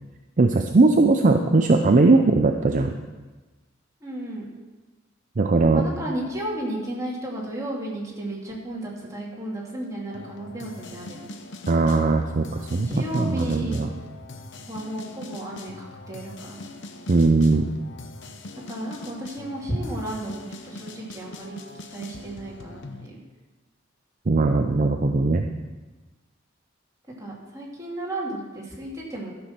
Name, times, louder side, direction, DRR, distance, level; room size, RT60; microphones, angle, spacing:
voice 1, 0.4-2.9 5.4-5.8 11.7-12.9 13.1-13.9 17.1-17.7 24.3-25.5, right 3 dB, 40° right, 4 dB, 0.5 m, -19 dB
voice 2, 4.0-4.4 5.7-11.3 12.7-13.8 14.7-16.6 18.7-21.6 21.9-23.2 27.2-29.3, right 1 dB, 15° right, -4 dB, 2.5 m, -33 dB
sound 1, 10.1-23.1, left 2 dB, 65° left, 0.9 m, -42 dB
12.5 x 6.2 x 5.9 m, 1.3 s
head